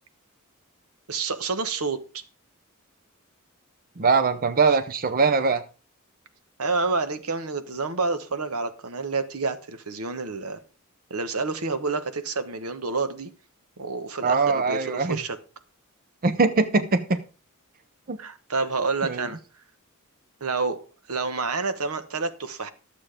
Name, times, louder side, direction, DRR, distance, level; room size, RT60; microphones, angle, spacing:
voice 1, 1.1-2.2 4.7-4.8 6.6-10.6 11.1-13.3 13.8-15.4 18.2-19.4 20.4-20.8 21.1-22.7, right 4 dB, 80° right, 1.2 m, -28 dB
voice 2, 4.0-5.6 14.2-15.2 16.2-17.2 18.1-18.2 19.0-19.2, right 4 dB, 40° right, 0.6 m, -22 dB
12.0 x 7.4 x 5.0 m
head